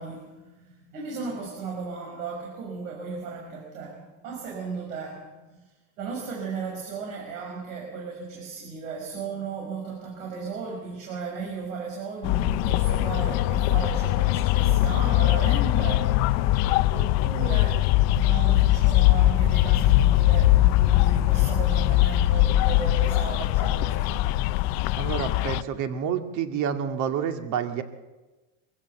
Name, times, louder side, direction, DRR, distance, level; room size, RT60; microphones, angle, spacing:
voice 1, 0.0-16.3 16.9-17.9 18.1-24.3, right 5 dB, 85° right, -1 dB, 6.0 m, -36 dB
sound 1, 12.2-25.6, left 15 dB, 45° left, 0.6 m, -21 dB
voice 2, 24.9-27.8, right 8 dB, 45° right, 6 dB, 2.2 m, -28 dB
24.0 x 16.0 x 7.2 m, 1.2 s
supercardioid pair, 140°, 40 cm